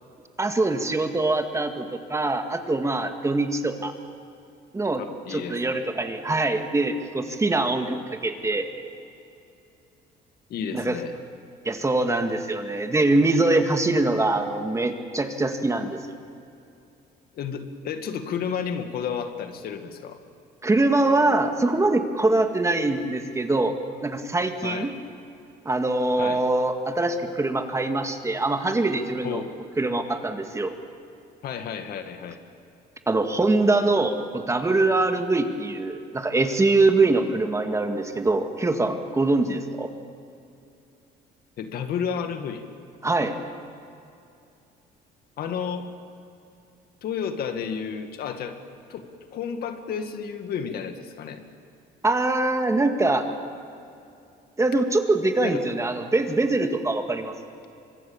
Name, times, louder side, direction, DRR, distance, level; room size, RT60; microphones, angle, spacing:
voice 1, 0.4-3.9 4.7-5.0 5.3-8.7 10.7-11.0 11.7-16.0 20.6-23.7 24.0-24.9 25.7-29.4 29.8-30.7 33.1-39.9 43.0-43.3 52.0-53.3 54.6-57.3, right 2 dB, 15° right, 6 dB, 1.9 m, -23 dB
voice 2, 5.0-5.8 10.5-11.1 17.4-20.2 24.6-24.9 26.2-26.4 29.2-29.5 31.4-32.4 41.6-42.6 45.4-45.9 47.0-48.6 48.9-51.4 55.4-55.6, left 7 dB, 65° left, 7 dB, 2.1 m, -32 dB
25.0 x 23.5 x 7.3 m, 2.6 s
cardioid pair, 110°, 17 cm